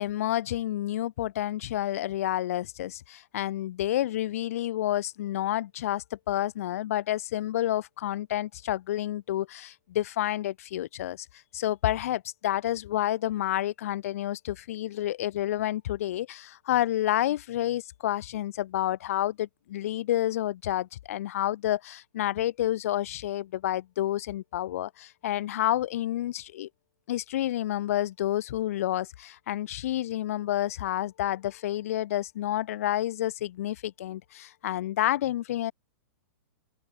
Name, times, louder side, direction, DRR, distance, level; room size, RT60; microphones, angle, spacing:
voice 1, 0.0-11.3 11.5-26.7 27.1-35.7, left 13 dB, 50° left, 0.9 m, -29 dB
open air
supercardioid pair, 175°, 10 cm